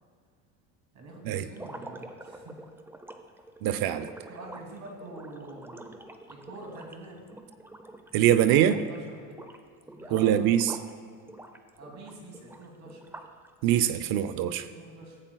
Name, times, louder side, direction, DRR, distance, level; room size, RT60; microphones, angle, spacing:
voice 1, 0.9-2.6 3.3-3.4 4.3-7.3 8.6-9.5 9.9-10.4 11.8-13.0 14.5-15.2, right 2 dB, 45° right, 0 dB, 2.6 m, -46 dB
sound 1, 1.5-8.2 8.5-9.0 9.3-10.9 11.3-13.5, right 1 dB, 5° right, 0.6 m, -46 dB
voice 2, 3.6-4.1 8.1-8.7 10.1-10.7 13.6-14.6, right 11 dB, 70° right, 13 dB, 0.6 m, -23 dB
14.5 x 8.6 x 2.3 m, 2.1 s
supercardioid pair, 90°, 38 cm